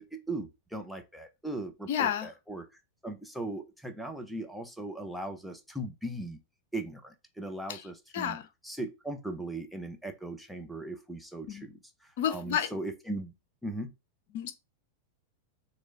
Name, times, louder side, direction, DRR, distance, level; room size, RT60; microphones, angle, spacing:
voice 1, 0.0-6.4 6.7-8.4 8.6-13.3 13.6-13.9, right 2 dB, ahead, 0.9 m, -39 dB
voice 2, 1.9-2.3 7.7-7.8 8.1-8.5 11.5-11.7 12.2-12.7 14.3-14.5, left 9 dB, 55° left, 0.7 m, -30 dB
6.3 x 3.2 x 2.6 m
figure-of-eight pair, 90°, 0 cm